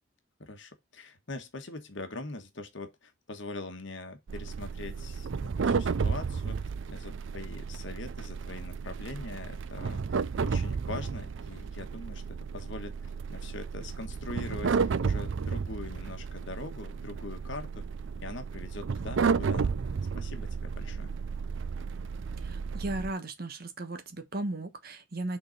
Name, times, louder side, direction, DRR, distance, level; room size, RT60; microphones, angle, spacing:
voice 1, 0.4-10.0 10.4-17.8 18.2-19.8 20.1-21.1, left 2 dB, 60° left, 1.3 m, -42 dB
sound 1, 4.3-23.1, right 5 dB, 65° right, 0.4 m, -32 dB
voice 2, 22.4-25.4, right 2 dB, 45° right, 1.2 m, -36 dB
6.8 x 3.9 x 5.2 m
head